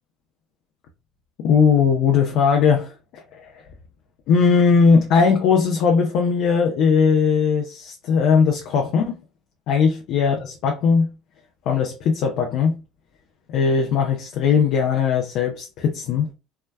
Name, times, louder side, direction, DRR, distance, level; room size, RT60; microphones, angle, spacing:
voice 1, 1.4-2.9 3.3-3.6 4.3-9.2 9.7-11.1 11.7-12.8 13.5-16.3, left 6 dB, 55° left, 0.8 m, -19 dB
5.6 x 3.3 x 2.2 m
figure-of-eight pair, 60°, 0 cm